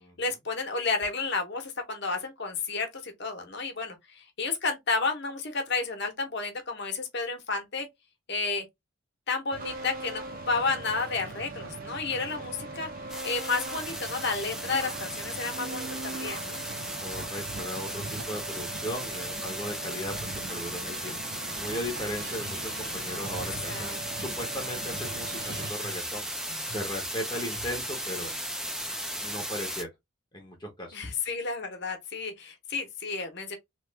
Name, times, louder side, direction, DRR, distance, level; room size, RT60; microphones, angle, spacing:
voice 1, 0.2-7.9 8.3-8.6 9.3-12.9 13.2-16.6 23.7-24.0 30.9-33.6, left 4 dB, 50° left, 0.9 m, -31 dB
sound 1, 9.5-25.7, right 3 dB, 40° right, 0.6 m, -40 dB
sound 2, 13.1-29.8, equal, 5° right, 0.3 m, -36 dB
voice 2, 17.0-20.1 20.5-21.2 21.5-26.3 26.7-28.4 29.2-29.9 30.3-31.0, equal, 20° left, 0.7 m, -37 dB
sound 3, 22.2-28.4, right 3 dB, 70° right, 1.5 m, -48 dB
3.0 x 2.4 x 3.3 m
head